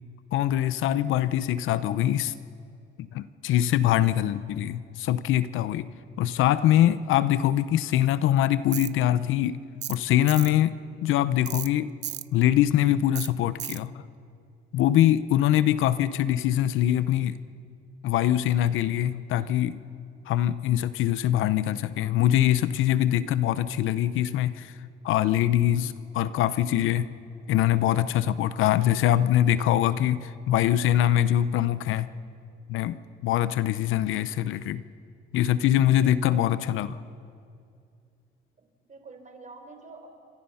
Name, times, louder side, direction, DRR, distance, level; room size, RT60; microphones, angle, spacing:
voice 1, 0.3-2.3 3.0-5.9 6.2-9.6 9.9-10.7 11.0-11.9 12.3-14.0 14.7-17.4 18.0-19.8 20.3-24.7 25.0-27.1 27.5-32.1 32.7-34.8 35.3-37.0, left 12 dB, 90° left, 15 dB, 0.8 m, -23 dB
Tools, 8.7-8.9 9.8-10.0 10.3-10.5 11.5-11.7 12.0-12.3 13.2-13.3 13.6-13.8, right 13 dB, 60° right, 0.5 m, -34 dB
voice 2, 36.0-36.9 38.6-40.1, right 3 dB, 40° right, 5 dB, 4.1 m, -48 dB
28.0 x 24.5 x 5.7 m, 2.5 s
cardioid pair, 90°, 20 cm